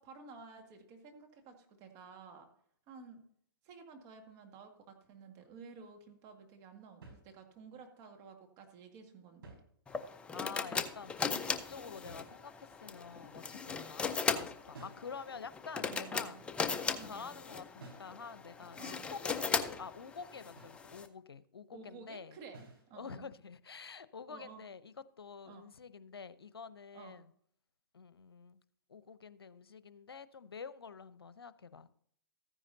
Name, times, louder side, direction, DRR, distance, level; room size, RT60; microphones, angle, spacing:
voice 1, 0.0-2.5 2.9-3.2 3.6-9.6 15.8-16.4 17.0-17.4 18.8-19.1 21.7-23.3 24.3-24.6 25.4-25.6 26.9-27.2, right 5 dB, 30° right, 1.9 m, -53 dB
sound 1, 7.0-7.8 9.2-10.3 12.1-12.8 14.7-15.2 17.8-18.2 20.6-20.9 22.5-22.9, right 3 dB, 70° right, 5.1 m, -55 dB
sound 2, 9.9-21.1, left 5 dB, 10° left, 0.5 m, -38 dB
voice 2, 10.1-22.4 22.9-27.3 27.9-28.6 28.9-31.9, left 5 dB, 90° left, 0.7 m, -48 dB
14.5 x 9.9 x 2.7 m
hypercardioid pair, 135°, 12 cm